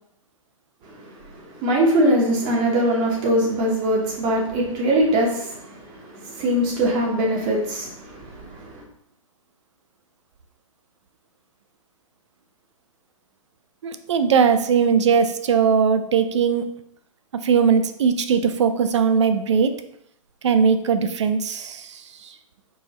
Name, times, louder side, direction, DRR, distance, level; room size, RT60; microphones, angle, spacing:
voice 1, 0.9-8.8, right 1 dB, 25° right, -2 dB, 0.9 m, -22 dB
voice 2, 13.8-16.7 17.3-19.8 20.4-22.3, right 6 dB, 55° right, 9 dB, 0.4 m, -20 dB
4.7 x 2.6 x 3.0 m, 0.70 s
figure-of-eight pair, 120°, 18 cm